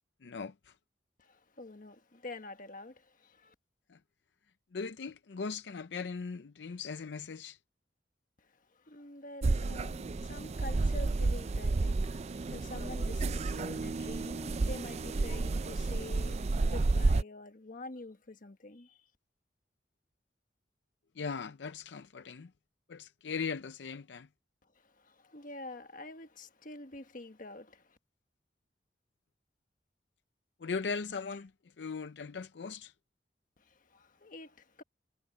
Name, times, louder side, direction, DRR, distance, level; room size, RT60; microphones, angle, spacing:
voice 1, 0.2-0.5 3.9-4.0 4.7-7.6 21.2-22.5 22.9-24.3 30.6-31.5 31.8-32.9, left 5 dB, 80° left, 0.5 m, -39 dB
voice 2, 1.2-3.5 8.4-19.0 24.7-28.0 33.6-34.8, left 2 dB, 50° left, 1.5 m, -47 dB
sound 1, 9.4-17.2, right 3 dB, 40° right, 0.4 m, -31 dB
head